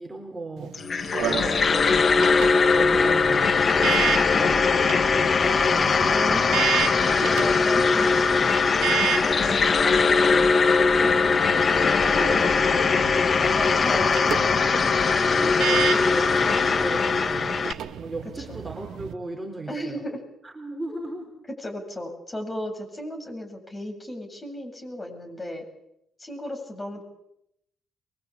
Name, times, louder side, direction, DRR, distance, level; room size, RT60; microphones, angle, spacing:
voice 1, 0.0-2.1 2.4-6.4 8.8-13.6 14.6-17.6 17.9-20.0 20.4-21.3, right 2 dB, 15° right, 3 dB, 3.9 m, -37 dB
sound 1, 0.6-19.1, right 10 dB, 75° right, 1.8 m, -33 dB
sound 2, 0.7-17.7, left 4 dB, 40° left, 1.3 m, -21 dB
voice 2, 6.1-6.6 6.9-8.2 9.2-9.7 13.5-14.6 18.5-18.7 19.7-20.2 20.9-21.0 21.6-25.6 26.2-27.0, left 1 dB, 20° left, 4 dB, 7.4 m, -35 dB
Wind instrument woodwind instrument, 7.1-15.6, left 2 dB, 60° left, 8.0 m, -43 dB
23.5 x 22.5 x 8.5 m, 0.80 s
cardioid pair, 90°, 0 cm